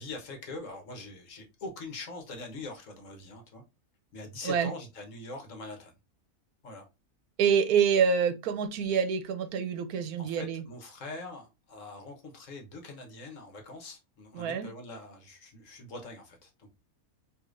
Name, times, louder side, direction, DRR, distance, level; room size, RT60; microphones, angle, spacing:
voice 1, 0.0-3.6 4.1-5.9 6.6-6.9 10.2-16.7, left 2 dB, 60° left, 1.3 m, -43 dB
voice 2, 7.4-10.6 14.3-14.7, right 7 dB, 85° right, 1.2 m, -26 dB
4.8 x 3.1 x 2.5 m
omnidirectional pair, 1.6 m